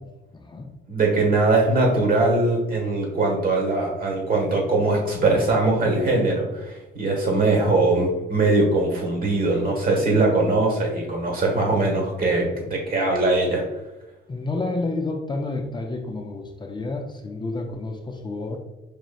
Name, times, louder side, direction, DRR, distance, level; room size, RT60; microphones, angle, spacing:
voice 1, 0.3-0.7 14.3-18.6, left 2 dB, 20° left, 3 dB, 0.4 m, -30 dB
voice 2, 0.9-13.6, right 2 dB, 45° right, 0 dB, 1.4 m, -21 dB
4.9 x 3.0 x 2.3 m, 1.0 s
cardioid pair, 90°, 20 cm